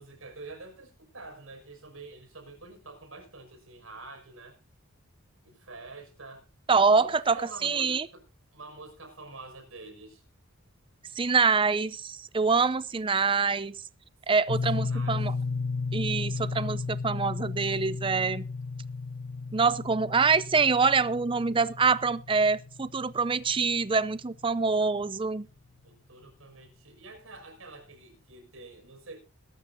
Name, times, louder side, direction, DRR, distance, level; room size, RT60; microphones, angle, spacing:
voice 1, 0.0-4.6 5.4-6.5 6.9-8.2 8.5-10.2 14.7-15.3 16.3-16.8 25.8-29.2, right 3 dB, 75° right, 5 dB, 6.1 m, -47 dB
voice 2, 6.7-8.1 11.1-13.7 14.3-15.3 15.9-18.5 19.5-25.5, right 4 dB, 25° right, 16 dB, 0.5 m, -25 dB
sound 1, 14.5-24.4, left 4 dB, 85° left, 1.0 m, -34 dB
21.0 x 12.0 x 2.7 m, 0.30 s
head